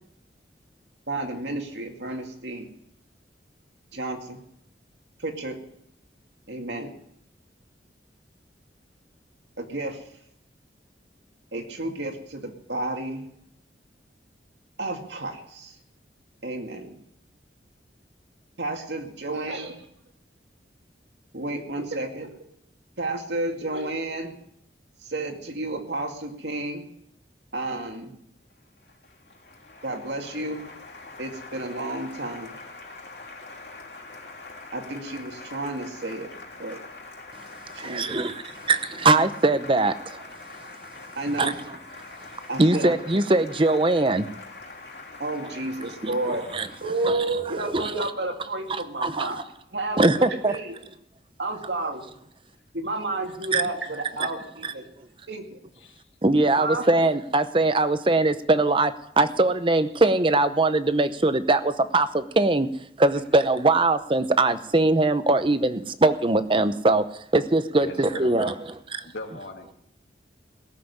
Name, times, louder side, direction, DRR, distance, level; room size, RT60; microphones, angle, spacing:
voice 1, 1.1-2.7 3.9-4.4 5.2-5.6 6.5-6.9 9.6-10.0 11.5-13.3 14.8-15.7 16.4-17.0 18.6-19.8 21.3-22.3 23.0-24.3 25.0-26.9 27.5-28.1 29.8-30.7 31.2-32.5 34.7-36.3 36.6-36.8 37.7-38.1 38.4-38.5 41.2-41.5 42.5-43.0 45.2-46.5 46.8-50.8 51.4-52.1 52.7-54.9 55.3-55.6 56.6-56.9, right 2 dB, 80° right, 4 dB, 2.3 m, -31 dB
Applause, 28.5-47.4, left 3 dB, 70° left, 3.2 m, -44 dB
voice 2, 37.8-38.4 38.7-40.2 41.4-41.5 42.6-44.3 45.4-45.5 46.0-46.7 47.0-48.1 48.7-49.3 50.0-50.6 53.5-53.7 54.2-54.3 54.6-54.7 56.2-62.7 63.0-67.0 67.3-68.5, right 2 dB, 30° right, 12 dB, 0.8 m, -22 dB
voice 3, 67.8-68.6 69.0-69.7, left 2 dB, 85° left, 3 dB, 2.4 m, -39 dB
18.0 x 7.6 x 9.9 m, 0.74 s
head